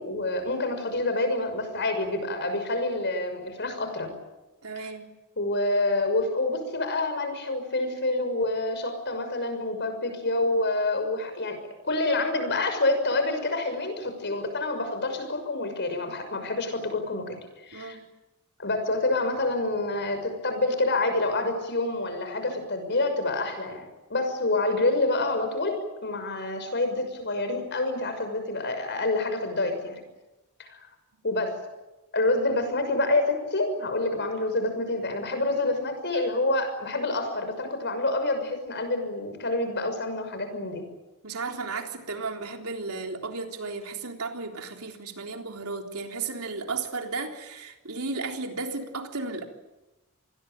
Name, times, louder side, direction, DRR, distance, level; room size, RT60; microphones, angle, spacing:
voice 1, 0.0-4.1 5.4-17.4 17.6-18.0 18.6-23.8 24.1-30.0 30.6-30.8 31.2-31.6 32.1-40.8, left 2 dB, 50° left, 7 dB, 6.1 m, -27 dB
voice 2, 4.6-5.1 17.7-18.1 41.2-49.5, right 3 dB, 75° right, 3 dB, 3.7 m, -34 dB
27.5 x 20.5 x 9.1 m, 1.0 s
head